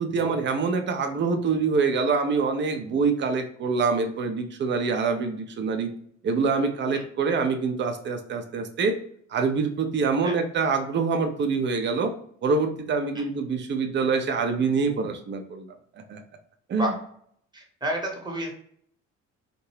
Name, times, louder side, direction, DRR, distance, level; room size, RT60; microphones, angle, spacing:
voice 1, 0.0-5.9 6.2-9.0 9.3-12.1 12.4-15.7 16.1-16.2 16.7-16.9, right 4 dB, 30° right, 6 dB, 0.5 m, -25 dB
voice 2, 17.5-18.5, right 1 dB, 10° right, 0 dB, 1.0 m, -30 dB
2.7 x 2.2 x 3.0 m, 0.63 s
figure-of-eight pair, 50°, 38 cm